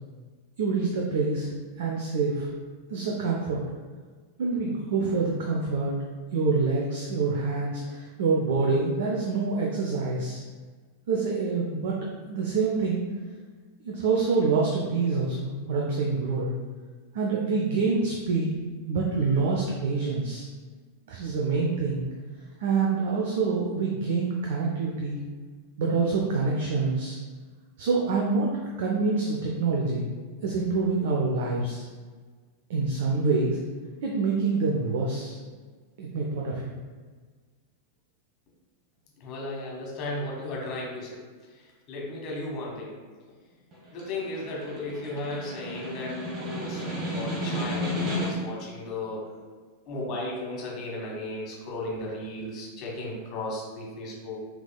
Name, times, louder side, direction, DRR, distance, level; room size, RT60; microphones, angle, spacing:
voice 1, 0.6-1.5 1.8-2.5 2.9-3.6 4.4-6.0 6.3-10.4 11.1-12.0 12.3-13.0 13.8-16.5 17.1-18.5 18.9-20.5 21.1-22.1 22.6-25.2 25.8-27.2 27.8-28.5 28.8-30.1 30.4-31.9 32.7-33.6 34.0-35.4 36.0-36.7, right 4 dB, 55° right, -2 dB, 0.6 m, -26 dB
voice 2, 39.2-41.2 41.5-42.9 43.9-49.3 49.9-54.4, left 2 dB, 40° left, -3 dB, 1.4 m, -35 dB
Snare drum, 43.7-48.6, equal, 35° right, 1.3 m, -32 dB
5.9 x 3.5 x 2.2 m, 1.5 s
figure-of-eight pair, 90°, 0 cm